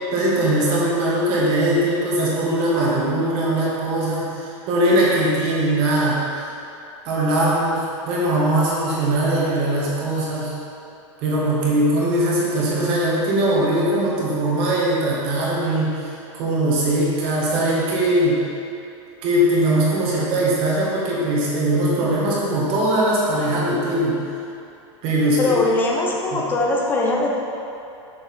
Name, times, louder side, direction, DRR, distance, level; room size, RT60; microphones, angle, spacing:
voice 1, 0.1-4.3 4.7-6.2 7.0-10.5 11.2-15.9 16.3-18.4 19.2-24.2 25.0-25.6 26.3-26.4, right 1 dB, 35° right, -6 dB, 1.7 m, -20 dB
voice 2, 25.4-27.4, left 2 dB, 10° left, -2 dB, 0.7 m, -21 dB
6.4 x 5.8 x 4.4 m, 2.7 s
supercardioid pair, 165°, 16 cm